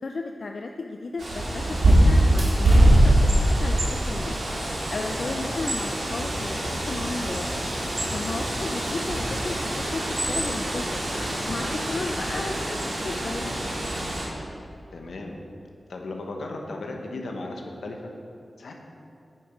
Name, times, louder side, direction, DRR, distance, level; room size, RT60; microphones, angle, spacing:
voice 1, 0.0-4.4 4.9-7.6 8.1-11.0 11.4-12.8 13.0-13.5, left 3 dB, 60° left, 4 dB, 0.4 m, -34 dB
Bird, 1.2-14.3, right 1 dB, 75° right, 2.2 m, -23 dB
voice 2, 14.9-15.4 15.9-18.1 18.6-18.7, left 2 dB, 85° left, 2 dB, 1.1 m, -36 dB
8.8 x 6.9 x 5.1 m, 2.6 s
wide cardioid pair, 90°, 0 cm